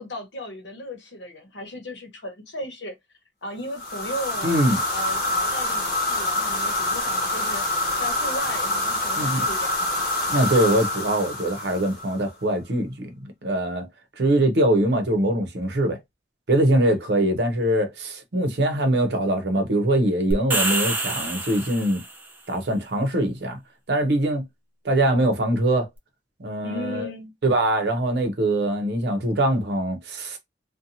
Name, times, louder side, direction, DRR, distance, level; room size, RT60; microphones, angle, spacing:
voice 1, 0.0-2.9 3.4-4.5 4.9-10.0 26.6-27.3, left 1 dB, 80° left, 1.0 m, -36 dB
sound 1, 3.7-12.2, left 1 dB, 55° left, 1.1 m, -26 dB
voice 2, 4.4-4.8 9.2-9.4 10.3-13.9 14.2-16.0 16.5-22.0 22.5-23.6 23.9-24.4 24.8-25.9 26.4-27.1 27.4-30.4, right 1 dB, 60° right, 0.7 m, -22 dB
sound 2, 20.3-22.2, right 2 dB, 10° right, 0.4 m, -26 dB
2.7 x 2.2 x 2.6 m
head